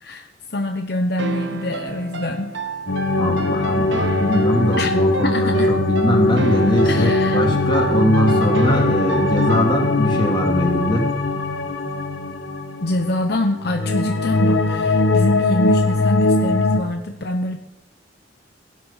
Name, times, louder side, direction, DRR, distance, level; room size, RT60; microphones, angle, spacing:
voice 1, 0.0-2.5 4.8-4.9 5.2-5.7 6.8-7.4 12.8-17.6, left 1 dB, 60° left, 4 dB, 1.0 m, -25 dB
sound 1, 1.2-10.1, right 3 dB, 75° right, 1.4 m, -30 dB
sound 2, 2.9-13.3 13.6-16.8, left 2 dB, 90° left, 1.4 m, -20 dB
voice 2, 3.2-11.1, equal, 25° left, 0 dB, 2.9 m, -21 dB
16.5 x 11.0 x 5.8 m, 0.97 s
head